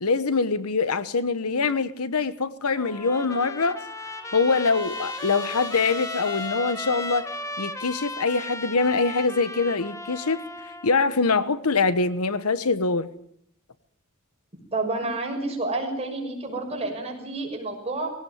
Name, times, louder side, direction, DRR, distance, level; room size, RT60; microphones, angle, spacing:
voice 1, 0.0-3.8 4.3-7.3 7.6-10.5 10.8-13.1, left 4 dB, 80° left, 14 dB, 1.1 m, -24 dB
Trumpet, 2.8-11.0, left 2 dB, 15° left, 1.5 m, -36 dB
Trumpet 2, 2.9-7.6, left 5 dB, 55° left, 3.2 m, -44 dB
voice 2, 14.7-18.1, right 2 dB, 30° right, 2 dB, 6.1 m, -29 dB
20.0 x 17.5 x 9.4 m, 0.70 s
head